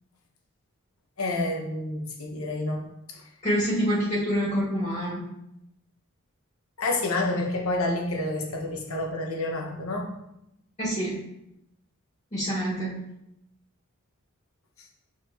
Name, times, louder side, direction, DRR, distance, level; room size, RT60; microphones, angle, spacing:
voice 1, 1.2-3.2 6.8-10.1, left 2 dB, 70° left, 1 dB, 1.1 m, -29 dB
voice 2, 3.4-5.2 10.8-11.2 12.3-13.1, equal, 30° left, -8 dB, 2.1 m, -26 dB
7.3 x 4.5 x 3.0 m, 0.84 s
head